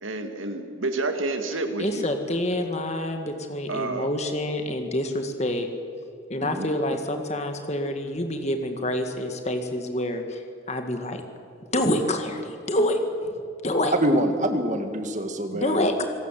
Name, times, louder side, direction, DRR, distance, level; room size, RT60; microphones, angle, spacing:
voice 1, 0.0-2.1 3.7-4.1, right 2 dB, 80° right, 7 dB, 2.2 m, -29 dB
voice 2, 1.8-5.7 6.3-11.2 11.7-13.0 13.6-13.9 15.5-16.0, left 1 dB, 35° left, 6 dB, 1.9 m, -27 dB
voice 3, 14.0-15.9, right 1 dB, 35° right, 7 dB, 1.8 m, -25 dB
26.0 x 17.5 x 7.7 m, 2.4 s
head